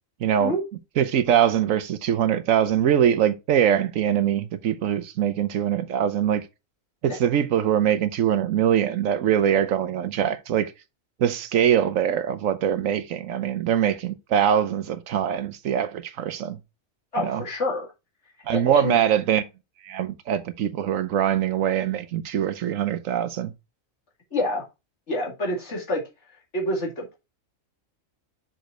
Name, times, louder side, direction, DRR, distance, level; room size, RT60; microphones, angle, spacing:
voice 1, 0.2-0.5 1.0-6.4 7.0-10.7 11.2-16.6 17.2-17.4 18.5-19.4 19.8-23.5, right 9 dB, 80° right, 1.1 m, -23 dB
voice 2, 17.1-17.9 18.5-19.0 24.3-24.6 25.1-26.0 26.5-27.2, left 1 dB, 60° left, 2.4 m, -27 dB
6.2 x 5.1 x 4.4 m
omnidirectional pair, 1.4 m